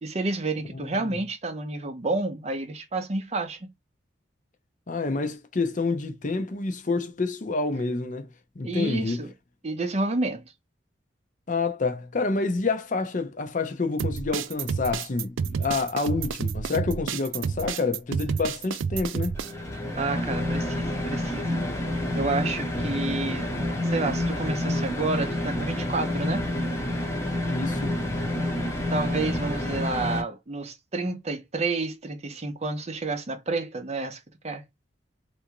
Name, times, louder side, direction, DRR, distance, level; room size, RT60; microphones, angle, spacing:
voice 1, 0.0-3.7 8.6-9.3 9.6-10.4 20.0-21.6 22.1-23.5 23.9-26.4 28.9-34.6, right 3 dB, 35° right, 0.6 m, -30 dB
voice 2, 4.9-8.3 8.6-9.2 11.5-19.4 27.5-28.0, left 3 dB, 40° left, 0.6 m, -28 dB
sound 1, 14.0-19.5, right 6 dB, 85° right, 0.4 m, -30 dB
sound 2, 19.3-30.2, left 1 dB, 15° left, 0.8 m, -28 dB
3.4 x 2.6 x 2.8 m
head